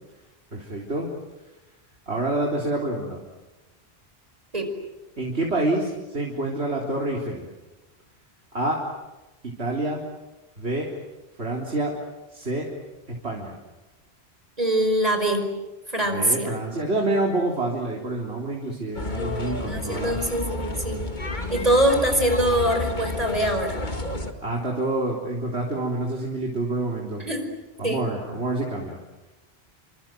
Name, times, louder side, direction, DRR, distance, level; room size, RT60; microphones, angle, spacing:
voice 1, 0.5-1.1 2.1-3.2 5.2-7.5 8.5-8.8 9.4-10.0 10.6-10.9 11.4-11.9 12.3-12.7 13.2-13.5 16.1-20.2 24.4-27.3 27.8-29.0, right 2 dB, 85° right, -1 dB, 4.2 m, -27 dB
voice 2, 14.6-15.5 15.9-16.5 19.2-21.0 21.5-23.8 27.2-27.5 27.8-28.0, right 1 dB, 35° right, 5 dB, 5.3 m, -23 dB
sound 1, 19.0-24.3, left 2 dB, 45° left, 2.4 m, -31 dB
29.5 x 26.0 x 7.8 m, 1.1 s
omnidirectional pair, 1.1 m